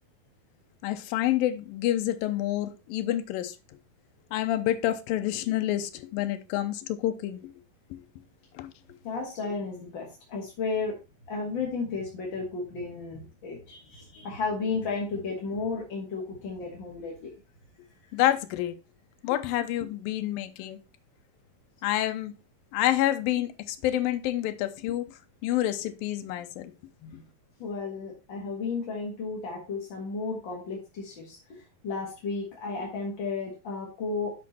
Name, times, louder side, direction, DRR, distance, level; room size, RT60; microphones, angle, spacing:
voice 1, 0.8-3.5 4.3-7.4 8.6-8.7 18.1-18.7 19.2-20.8 21.8-22.3 22.7-25.1 25.4-26.7, left 13 dB, 75° left, 2.5 m, -28 dB
voice 2, 9.0-10.9 11.3-17.3 27.0-27.3 27.6-34.3, left 4 dB, 45° left, 1.7 m, -33 dB
8.2 x 6.2 x 4.2 m
omnidirectional pair, 4.3 m